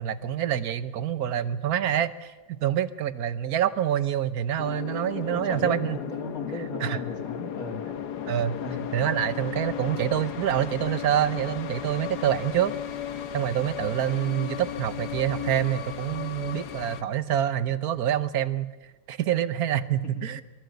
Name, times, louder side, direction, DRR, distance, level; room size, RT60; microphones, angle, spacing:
voice 1, 0.0-6.0 6.8-7.0 8.3-8.6 8.9-12.7 13.3-18.7 19.1-20.4, right 10 dB, 65° right, 14 dB, 1.4 m, -26 dB
sound 1, 4.6-17.0, left 9 dB, 75° left, 1.6 m, -35 dB
voice 2, 5.2-7.8 8.6-8.8 20.0-20.3, left 2 dB, 60° left, 3 dB, 3.4 m, -36 dB
24.0 x 19.5 x 8.1 m, 1.1 s
omnidirectional pair, 1.7 m